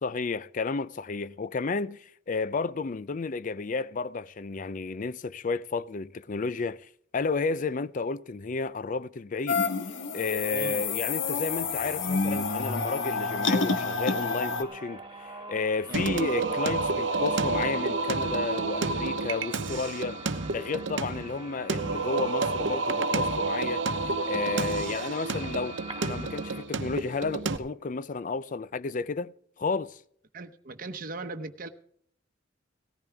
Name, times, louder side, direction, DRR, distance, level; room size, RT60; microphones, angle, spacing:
voice 1, 0.0-9.6 10.1-20.2 20.5-23.9 24.3-25.8 26.0-29.3 29.6-30.0, left 4 dB, 45° left, 0.5 m, -32 dB
sound 1, 9.5-14.6, left 4 dB, 90° left, 1.2 m, -28 dB
voice 2, 10.5-10.8 15.9-16.1 30.3-31.7, right 3 dB, 50° right, 1.0 m, -38 dB
sound 2, 12.4-26.6, right 2 dB, 25° right, 2.1 m, -45 dB
Singing, 15.9-27.6, right 3 dB, 75° right, 0.9 m, -30 dB
18.0 x 14.5 x 3.5 m
head